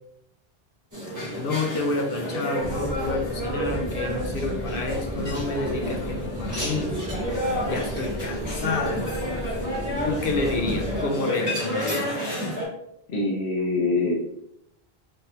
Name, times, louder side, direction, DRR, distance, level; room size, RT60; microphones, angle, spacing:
sound 1, 0.9-12.7, equal, 20° right, 1.3 m, -30 dB
voice 1, 1.4-6.9 7.7-9.1 10.0-12.1, left 3 dB, 65° left, 2 dB, 0.8 m, -29 dB
sound 2, 2.6-11.0, equal, 20° left, 1.3 m, -36 dB
voice 2, 13.1-14.1, left 3 dB, 85° left, -3 dB, 1.1 m, -24 dB
3.3 x 3.1 x 2.8 m, 0.80 s
omnidirectional pair, 1.0 m